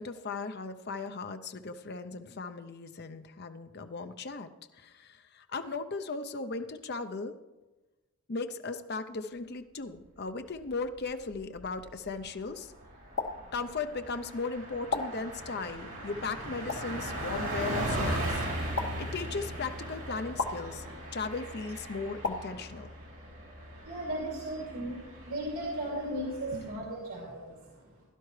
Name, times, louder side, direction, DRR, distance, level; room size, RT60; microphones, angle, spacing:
voice 1, 0.0-4.5 4.8-7.4 8.3-12.7 13.5-20.8 21.1-22.9 26.5-27.0, left 4 dB, 45° left, 9 dB, 0.6 m, -37 dB
Car passing by, 11.1-11.7 12.1-12.2 12.5-26.8, right 1 dB, 65° right, 4.6 m, -38 dB
sound 1, 13.1-13.3 14.9-15.0 16.7-16.8 18.7-18.9 20.4-20.5 22.2-22.4, left 4 dB, 75° left, 1.1 m, -30 dB
voice 2, 23.8-27.6, right 1 dB, 85° right, -3 dB, 2.7 m, -36 dB
16.5 x 11.5 x 3.2 m, 1.1 s
head